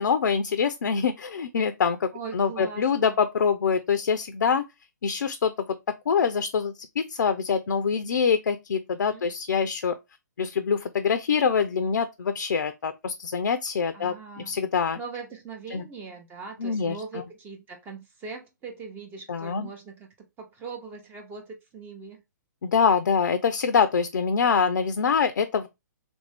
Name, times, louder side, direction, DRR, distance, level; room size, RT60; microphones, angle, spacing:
voice 1, 0.0-4.6 5.0-5.7 6.1-9.9 10.4-15.0 15.7-15.8 16.6-17.2 19.3-19.7 22.6-25.7, left 6 dB, 75° left, 0.4 m, -25 dB
voice 2, 2.1-3.2 9.1-9.3 13.9-14.6 15.0-20.1 20.4-22.2, right 5 dB, 20° right, 0.7 m, -40 dB
3.2 x 2.6 x 3.3 m
hypercardioid pair, 130°, 10 cm